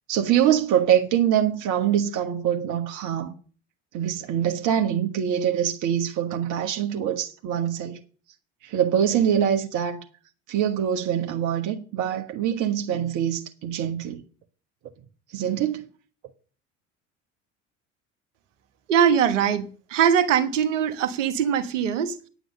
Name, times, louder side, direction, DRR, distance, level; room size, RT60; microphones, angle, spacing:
voice 1, 0.1-3.3 3.9-8.0 8.6-10.0 10.5-14.2 15.3-15.9, right 9 dB, 55° right, 1.4 m, -24 dB
voice 2, 18.9-22.3, right 8 dB, 75° right, 1.3 m, -22 dB
9.4 x 8.0 x 6.6 m
hypercardioid pair, 70°, 37 cm